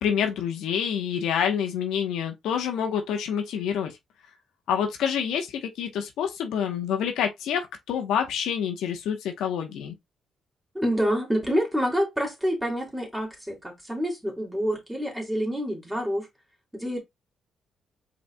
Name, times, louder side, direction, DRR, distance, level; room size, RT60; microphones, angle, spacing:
voice 1, 0.0-3.9 4.7-9.9, left 8 dB, 85° left, 1.0 m, -27 dB
voice 2, 10.7-16.3 16.7-17.0, equal, 5° right, 2.7 m, -27 dB
5.2 x 4.1 x 2.2 m
cardioid pair, 90°, 0 cm